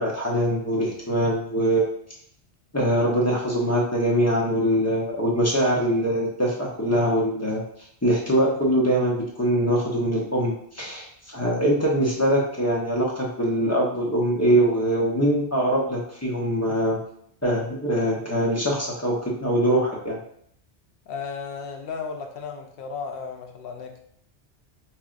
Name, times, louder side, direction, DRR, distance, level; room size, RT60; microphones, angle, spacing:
voice 1, 0.0-1.9 2.7-7.6 8.0-17.0 17.4-20.2, right 1 dB, 15° left, -4 dB, 0.7 m, -23 dB
voice 2, 21.1-24.0, left 5 dB, 65° left, 4 dB, 0.8 m, -34 dB
5.6 x 2.3 x 2.5 m, 0.67 s
omnidirectional pair, 1.2 m